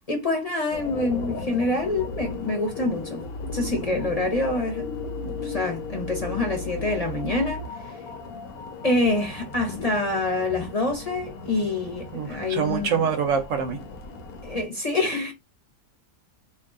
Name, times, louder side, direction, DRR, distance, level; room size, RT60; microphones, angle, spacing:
voice 1, 0.1-3.2 3.5-4.9 5.2-7.9 8.8-13.1 14.4-15.3, left 2 dB, 30° left, 0.9 m, -26 dB
sound 1, 0.7-14.6, left 3 dB, 90° left, 1.2 m, -36 dB
voice 2, 12.1-13.8, right 6 dB, 70° right, 0.9 m, -25 dB
3.0 x 2.6 x 3.5 m
omnidirectional pair, 1.5 m